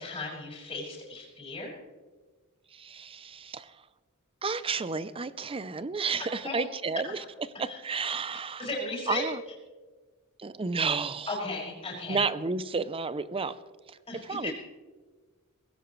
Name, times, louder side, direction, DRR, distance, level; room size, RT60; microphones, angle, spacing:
voice 1, 0.0-1.8 6.2-6.6 7.7-7.8 8.6-9.2 11.3-12.2 14.1-14.5, left 2 dB, 25° left, -4 dB, 5.6 m, -36 dB
voice 2, 2.7-3.7 4.4-7.2 7.6-8.7 9.1-9.4 10.4-11.3 12.1-13.6 14.3-14.5, right 4 dB, 25° right, 15 dB, 0.5 m, -31 dB
19.0 x 16.5 x 3.2 m, 1.4 s
head